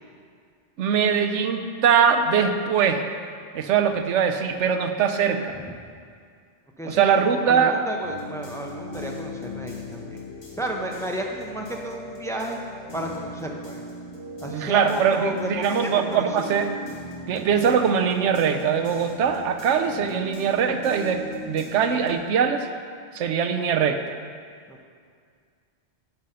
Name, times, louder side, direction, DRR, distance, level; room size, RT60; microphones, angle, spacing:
voice 1, 0.8-3.0 3.5-5.6 6.8-7.8 14.5-16.7 17.3-21.2 21.5-22.7 23.1-24.0, right 7 dB, 85° right, 7 dB, 1.0 m, -22 dB
voice 2, 6.8-10.2 10.6-12.6 12.9-13.8 14.4-16.3 24.7-24.8, right 1 dB, 5° left, 1 dB, 0.6 m, -33 dB
sound 1, 8.0-22.1, left 1 dB, 65° left, 1.8 m, -38 dB
10.5 x 5.2 x 5.6 m, 2.2 s
omnidirectional pair, 1.2 m